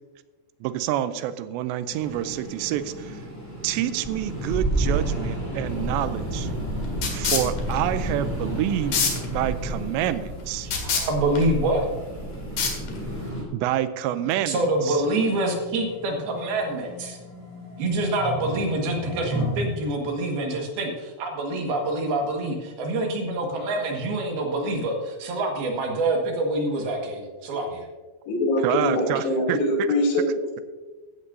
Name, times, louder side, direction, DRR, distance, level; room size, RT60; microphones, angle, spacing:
voice 1, 0.6-3.2 3.6-6.5 7.1-9.1 9.3-10.7 13.5-15.0 28.6-29.9, right 12 dB, 85° right, 12 dB, 2.8 m, -27 dB
sound 1, 1.9-13.4, right 1 dB, 5° left, 1.5 m, -31 dB
sound 2, 5.7-13.3, left 4 dB, 55° left, 2.9 m, -29 dB
voice 2, 10.6-11.9 14.5-17.2 17.8-27.9, right 2 dB, 65° right, 1 dB, 3.4 m, -26 dB
sound 3, 14.1-19.9, equal, 25° right, 4.0 m, -35 dB
voice 3, 28.3-30.6, left 1 dB, 70° left, -3 dB, 4.9 m, -23 dB
15.5 x 12.0 x 2.7 m, 1.3 s
omnidirectional pair, 5.0 m